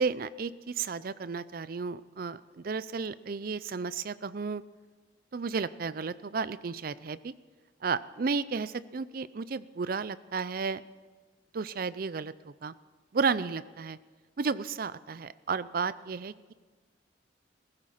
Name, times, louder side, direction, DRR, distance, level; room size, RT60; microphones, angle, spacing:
voice 1, 0.0-4.6 5.3-7.3 7.8-10.8 11.5-12.7 13.1-14.0 14.4-16.5, right 5 dB, 50° right, 17 dB, 0.5 m, -33 dB
16.0 x 15.0 x 5.7 m, 1.4 s
head